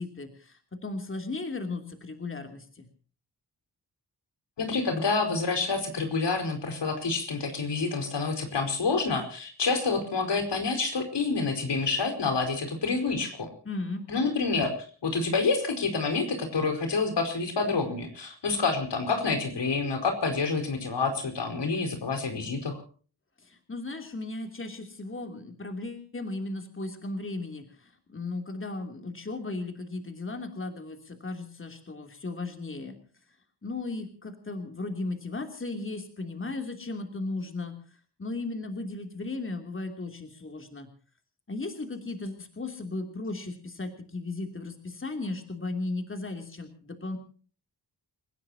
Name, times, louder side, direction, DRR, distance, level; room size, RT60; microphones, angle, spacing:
voice 1, 0.0-2.9 13.6-14.0 23.4-32.9 33.6-37.7 38.2-40.9 41.5-47.2, left 2 dB, 30° left, 5 dB, 3.0 m, -36 dB
voice 2, 4.6-13.5 14.1-14.7 15.0-22.8, left 4 dB, 85° left, 6 dB, 5.0 m, -28 dB
29.5 x 16.5 x 2.8 m, 0.42 s
wide cardioid pair, 130°, 41 cm